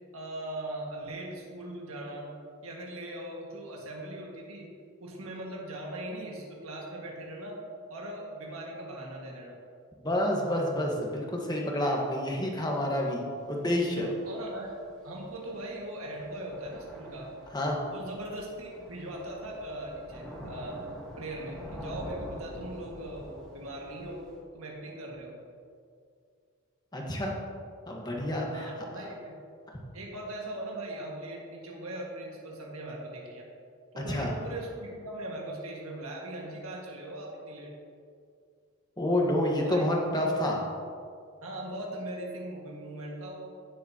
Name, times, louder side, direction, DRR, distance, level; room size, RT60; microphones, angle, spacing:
voice 1, 0.1-2.3 2.6-4.7 5.0-7.6 7.9-9.6 14.0-17.3 17.9-20.8 21.2-24.3 24.5-25.4 28.5-29.4 29.9-33.5 33.9-37.7 39.6-39.8 40.2-40.4 41.4-43.5, right 1 dB, 75° right, -2 dB, 1.8 m, -40 dB
voice 2, 10.0-13.2 13.5-14.1 17.5-17.8 26.9-27.3 27.9-28.7 34.1-34.3 39.0-40.6, left 1 dB, 20° left, -1 dB, 1.3 m, -28 dB
Thunder / Rain, 13.4-24.4, equal, ahead, 2.7 m, -46 dB
16.5 x 7.2 x 2.9 m, 2.3 s
head